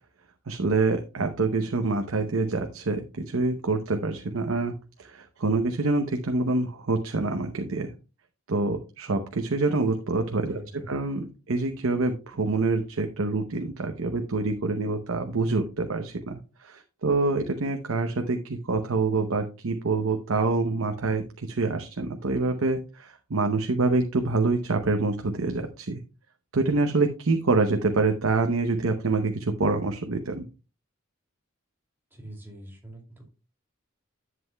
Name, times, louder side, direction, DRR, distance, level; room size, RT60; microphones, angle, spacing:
voice 1, 0.5-4.7 5.0-7.9 8.5-10.6 10.9-26.0 26.5-30.5, right 3 dB, 70° right, 5 dB, 0.8 m, -26 dB
voice 2, 10.5-11.0 32.1-33.2, right 1 dB, 10° right, -1 dB, 2.4 m, -44 dB
11.0 x 7.7 x 2.2 m, 0.32 s
head